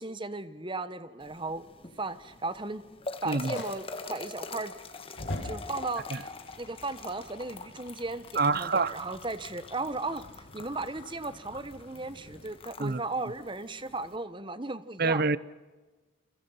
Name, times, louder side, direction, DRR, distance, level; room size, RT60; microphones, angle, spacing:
voice 1, 0.0-1.6 2.0-2.8 3.2-4.7 5.4-6.3 6.6-10.2 10.5-15.3, right 3 dB, 25° right, 1.2 m, -36 dB
sound 1, 1.2-14.2, left 3 dB, 30° left, 1.9 m, -44 dB
voice 2, 3.2-3.6 6.1-6.2 8.4-9.0 12.8-13.0 15.0-15.4, right 4 dB, 50° right, 0.8 m, -26 dB
Fire, 3.5-12.5, left 1 dB, 70° left, 6.7 m, -46 dB
29.5 x 24.5 x 5.8 m
head